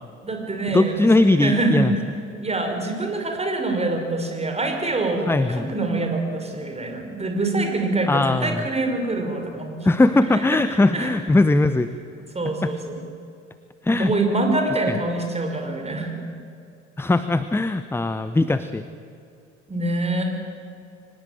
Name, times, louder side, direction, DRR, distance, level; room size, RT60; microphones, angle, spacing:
voice 1, 0.2-1.8 2.4-11.2 12.3-13.0 13.9-16.2 19.7-20.3, right 2 dB, 15° right, 4 dB, 5.6 m, -25 dB
voice 2, 0.7-1.9 5.3-5.7 8.1-8.6 9.8-11.9 12.6-12.7 13.8-14.1 14.9-15.0 17.0-18.9, left 2 dB, 5° left, 12 dB, 0.8 m, -20 dB
24.0 x 19.0 x 9.1 m, 2.4 s
figure-of-eight pair, 65°, 38 cm